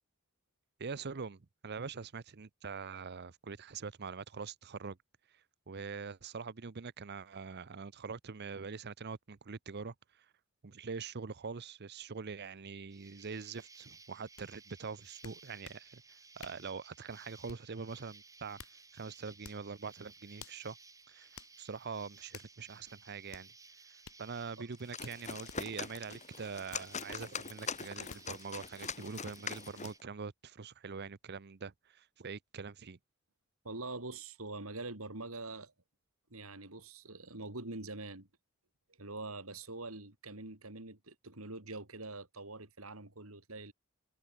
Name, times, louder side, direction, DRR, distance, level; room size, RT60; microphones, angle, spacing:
voice 1, 0.8-5.0 5.7-10.3 10.6-16.0 16.4-18.6 18.9-20.8 21.1-21.3 21.6-23.5 24.2-33.0, right 5 dB, 50° right, 0.7 m, -44 dB
Insect, 12.9-30.0, right 4 dB, 15° right, 3.4 m, -58 dB
sound 1, 14.4-14.5 15.2-15.8 16.4-16.7 17.5-17.8 18.3-18.8 19.4-19.7 20.4-20.6 21.4-21.5 22.3-22.6 23.3-23.5 24.0-24.2 25.0-25.6 26.7-27.3 28.1-28.3 28.9-29.0 29.8-30.0, left 5 dB, 80° left, 4.4 m, -52 dB
sound 2, 24.7-30.0, left 6 dB, 35° left, 2.4 m, -42 dB
voice 2, 33.6-35.7 36.3-38.3 39.0-43.7, right 2 dB, 75° right, 4.4 m, -44 dB
head